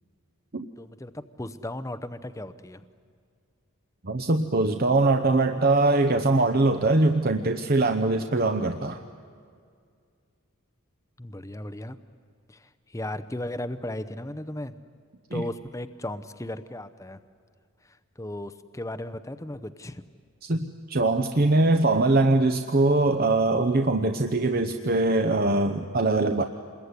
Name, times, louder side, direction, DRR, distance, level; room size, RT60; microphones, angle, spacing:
voice 1, 0.8-2.8 11.2-12.0 12.5-14.8 15.3-17.2 17.8-20.0, left 1 dB, 15° left, 12 dB, 0.7 m, -36 dB
voice 2, 4.0-9.0 15.3-15.4 20.4-26.4, right 2 dB, 45° right, 6 dB, 0.9 m, -22 dB
28.0 x 21.5 x 9.7 m, 2.2 s
head